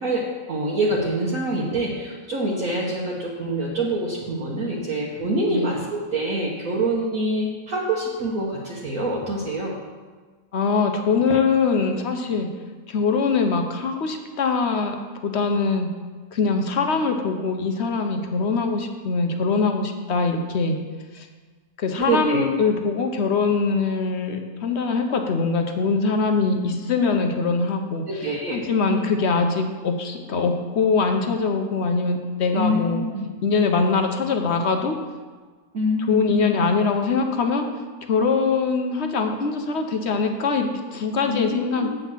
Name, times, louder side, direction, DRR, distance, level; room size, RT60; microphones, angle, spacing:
voice 1, 0.0-9.8 22.1-22.4 28.1-28.9 32.5-33.2 35.7-36.4 41.3-41.4 41.8-42.0, right 1 dB, 55° right, -4 dB, 1.5 m, -25 dB
voice 2, 10.5-12.5 12.9-15.0 15.2-15.9 16.3-20.8 21.1-21.3 21.8-33.0 33.4-35.0 36.1-37.7 38.1-41.9, left 4 dB, 55° left, 5 dB, 0.8 m, -23 dB
8.2 x 5.8 x 7.3 m, 1.4 s
omnidirectional pair, 1.9 m